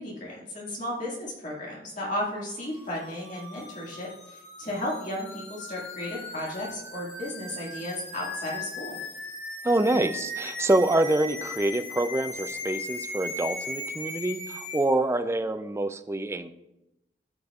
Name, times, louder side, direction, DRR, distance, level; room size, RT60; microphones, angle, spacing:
voice 1, 0.0-9.0, left 1 dB, 45° left, -4 dB, 1.9 m, -34 dB
sound 1, 2.6-14.9, left 2 dB, 85° left, 2.1 m, -38 dB
voice 2, 9.6-16.5, right 2 dB, 15° right, 9 dB, 0.4 m, -26 dB
13.5 x 5.1 x 2.4 m, 0.88 s
head